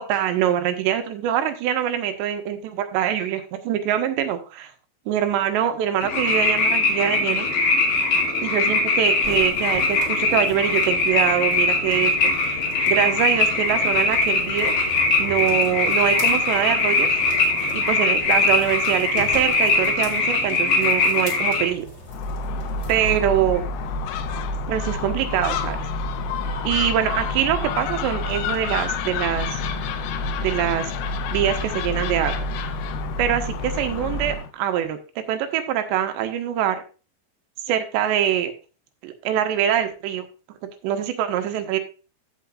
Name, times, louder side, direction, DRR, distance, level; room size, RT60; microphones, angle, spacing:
voice 1, 0.0-4.7 5.1-7.5 8.4-14.7 15.2-17.1 17.7-21.9 22.9-23.6 24.7-25.8 26.6-29.6 30.4-30.9 31.3-32.4 33.2-36.8 37.7-38.5 39.0-40.3 40.8-41.8, right 10 dB, 85° right, 7 dB, 3.2 m, -24 dB
sound 1, 6.0-21.7, left 3 dB, 55° left, 3.7 m, -21 dB
sound 2, 9.2-23.2, equal, 25° left, 2.1 m, -39 dB
Gull seagull, 22.1-34.5, left 3 dB, 80° left, 2.5 m, -28 dB
15.5 x 5.8 x 2.5 m, 0.33 s
omnidirectional pair, 5.0 m